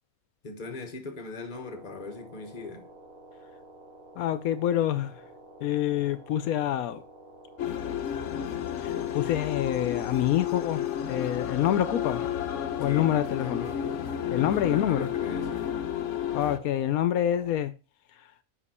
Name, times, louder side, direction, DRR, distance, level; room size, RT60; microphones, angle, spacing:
voice 1, 0.4-2.9 12.8-14.0 14.3-15.8, left 3 dB, 35° left, 1.3 m, -40 dB
sound 1, 1.5-17.6, right 2 dB, 30° right, 2.4 m, -50 dB
voice 2, 4.2-5.1 5.6-7.0 8.8-12.3 12.8-13.7 14.3-15.1 16.3-17.7, left 11 dB, 85° left, 1.1 m, -26 dB
sound 2, 7.6-16.6, left 9 dB, 65° left, 0.9 m, -32 dB
7.3 x 5.4 x 4.2 m
omnidirectional pair, 1.5 m